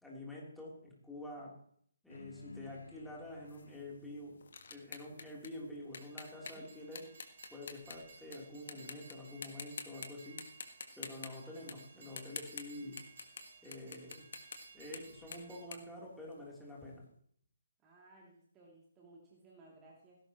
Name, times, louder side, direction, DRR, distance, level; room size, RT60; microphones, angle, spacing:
voice 1, 0.0-1.6 2.0-4.4 4.7-7.1 7.5-10.4 11.0-13.0 13.6-14.2 14.7-17.1, left 1 dB, ahead, -4 dB, 3.5 m, -47 dB
sound 1, 2.1-6.8, left 4 dB, 70° left, 1.1 m, -57 dB
sound 2, 3.5-8.4 8.7-9.1 9.4-10.1 10.4-16.7, left 5 dB, 50° left, 1.7 m, -48 dB
Train, 5.9-15.7, right 4 dB, 50° right, 4.1 m, -58 dB
voice 2, 17.8-20.2, right 2 dB, 15° right, -3 dB, 2.8 m, -60 dB
17.5 x 16.5 x 3.1 m, 0.64 s
figure-of-eight pair, 140°, 0 cm